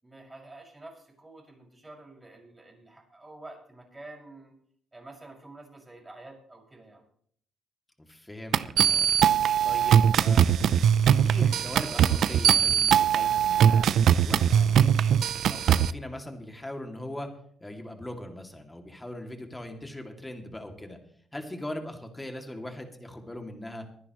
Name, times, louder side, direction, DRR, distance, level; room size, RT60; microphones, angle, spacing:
voice 1, 0.0-4.5 4.9-7.0, right 2 dB, 20° right, -1 dB, 6.1 m, -48 dB
voice 2, 8.1-9.1 9.6-10.6 11.1-13.9 14.2-15.1 15.4-17.3 17.6-21.0 21.3-23.8, left 1 dB, 10° left, 4 dB, 2.5 m, -40 dB
sound 1, 8.5-15.9, right 9 dB, 70° right, 0.5 m, -21 dB
24.0 x 10.5 x 3.1 m, 0.62 s
cardioid pair, 90°, 0 cm